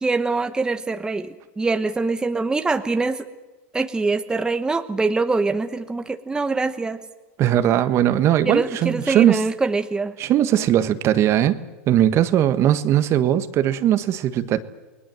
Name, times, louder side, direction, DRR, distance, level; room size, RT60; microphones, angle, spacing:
voice 1, 0.0-1.3 1.6-3.2 3.7-7.0 8.4-10.1, right 3 dB, 10° right, 8 dB, 1.1 m, -23 dB
voice 2, 7.4-9.4 10.2-11.6 11.9-14.6, right 11 dB, 40° right, 12 dB, 1.5 m, -19 dB
28.5 x 21.0 x 7.7 m, 1.2 s
hypercardioid pair, 115°, 7 cm